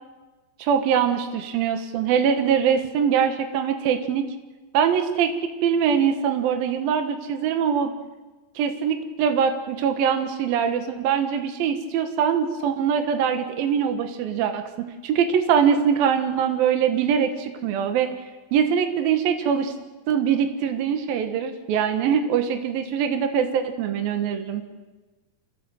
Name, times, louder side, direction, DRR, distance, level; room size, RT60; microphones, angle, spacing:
voice 1, 0.6-4.2 4.7-7.9 8.6-18.2 18.5-19.7 20.1-24.6, right 7 dB, 75° right, 6 dB, 3.1 m, -23 dB
28.5 x 16.0 x 7.6 m, 1.2 s
omnidirectional pair, 4.3 m